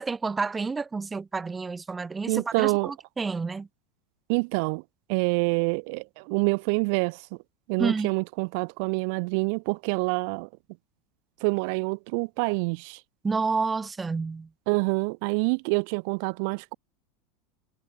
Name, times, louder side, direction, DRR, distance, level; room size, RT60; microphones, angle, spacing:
voice 1, 0.0-3.7 7.8-8.1 13.2-14.5, right 4 dB, 10° right, 4.3 m, -29 dB
voice 2, 2.3-2.9 4.3-4.8 5.1-7.2 7.7-10.5 11.4-13.0 14.7-16.7, right 35 dB, 50° right, 2.0 m, -26 dB
supercardioid pair, 170°, 0 cm